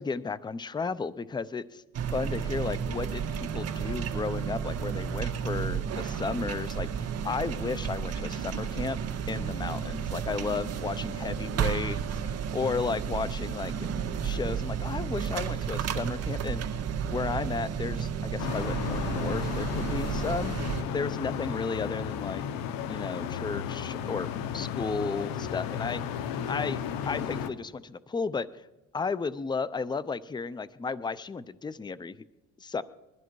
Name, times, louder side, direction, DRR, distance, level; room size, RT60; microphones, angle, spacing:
voice 1, 0.0-1.8 2.1-9.0 9.3-12.2 12.5-13.7 14.2-16.6 17.1-20.5 20.9-22.4 22.9-26.0 26.5-28.6 28.9-32.2 32.6-32.8, left 4 dB, 15° left, 17 dB, 0.5 m, -33 dB
sound 1, 1.9-20.8, right 7 dB, 50° right, 1.6 m, -32 dB
sound 2, 18.4-27.5, left 8 dB, 90° left, 1.1 m, -34 dB
20.5 x 13.5 x 4.7 m, 1.1 s
cardioid pair, 115°, 33 cm